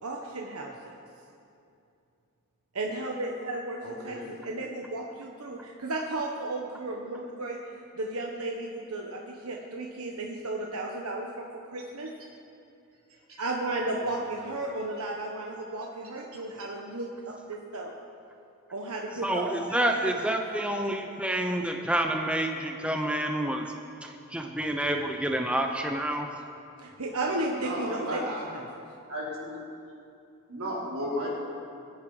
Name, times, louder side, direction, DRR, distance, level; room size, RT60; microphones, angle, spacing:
voice 1, 0.0-0.9 2.7-4.2 4.4-12.1 13.4-17.9 18.7-19.9 26.8-28.3, right 2 dB, 85° right, 0 dB, 1.3 m, -34 dB
voice 2, 3.8-4.3 13.3-13.4 14.0-14.5 19.7-19.8 27.6-28.4 29.1-29.7 30.5-31.3, equal, 65° right, -5 dB, 4.1 m, -35 dB
voice 3, 19.2-23.7 24.0-26.3, right 1 dB, 5° right, 3 dB, 0.7 m, -28 dB
23.5 x 9.6 x 4.9 m, 2.6 s
head